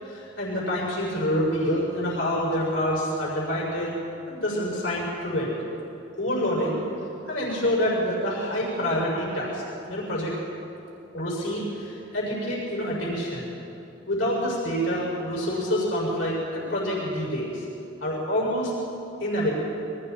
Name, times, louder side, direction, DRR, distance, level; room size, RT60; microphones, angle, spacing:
voice 1, 0.0-3.9 4.3-5.5 6.2-6.8 7.3-9.6 9.9-10.3 11.1-13.5 14.1-17.6 18.0-18.7 19.2-19.6, equal, 80° left, -5 dB, 6.5 m, -27 dB
29.5 x 23.5 x 4.6 m, 2.8 s
head